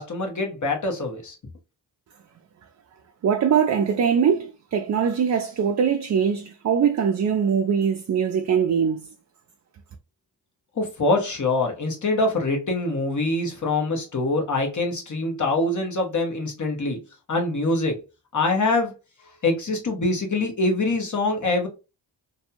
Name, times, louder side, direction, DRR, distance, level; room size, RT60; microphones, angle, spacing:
voice 1, 0.0-1.4 10.8-17.0 17.3-18.0 18.3-18.9 19.4-21.7, left 2 dB, 45° left, 1.1 m, -24 dB
voice 2, 3.2-9.1, right 7 dB, 40° right, 0.4 m, -22 dB
2.6 x 2.3 x 2.8 m
cardioid pair, 65°, 43 cm